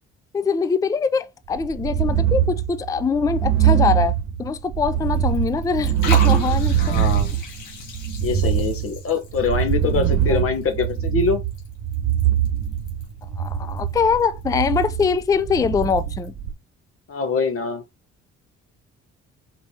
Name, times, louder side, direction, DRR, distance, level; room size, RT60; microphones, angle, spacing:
voice 1, 0.3-6.9 10.2-10.4 13.4-16.3, left 5 dB, 10° left, 0.3 m, -23 dB
sound 1, 1.5-16.5, right 10 dB, 60° right, 0.9 m, -22 dB
Liquid, 4.9-16.3, left 4 dB, 85° left, 1.7 m, -38 dB
voice 2, 6.8-7.4 8.2-11.4 17.1-17.8, left 5 dB, 45° left, 1.0 m, -24 dB
4.5 x 3.3 x 2.7 m
cardioid pair, 90°, 30 cm